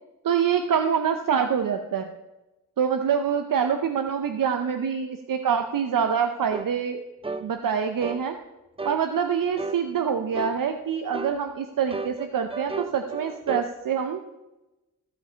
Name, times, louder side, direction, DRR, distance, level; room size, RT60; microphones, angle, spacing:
voice 1, 0.2-2.1 2.8-7.0 7.4-8.4 8.8-14.2, right 7 dB, 85° right, 7 dB, 0.7 m, -25 dB
sound 1, 6.5-6.7 7.2-7.5 8.0-8.2 8.8-9.0 9.6-9.8 10.3-10.6 11.1-11.4 11.9-13.7, right 3 dB, 20° right, 0.4 m, -33 dB
15.0 x 5.1 x 5.5 m, 1.0 s
wide cardioid pair, 105°, 32 cm